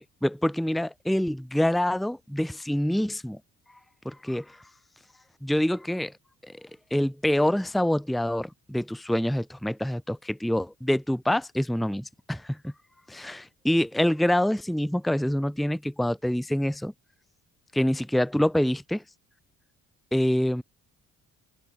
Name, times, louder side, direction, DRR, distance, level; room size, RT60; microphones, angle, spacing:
voice 1, 0.0-3.4 4.0-4.6 5.4-6.1 6.4-12.7 13.1-16.9 17.7-19.0 20.1-20.6, left 1 dB, ahead, 1.0 m, -26 dB
open air
cardioid pair, 85°, 35 cm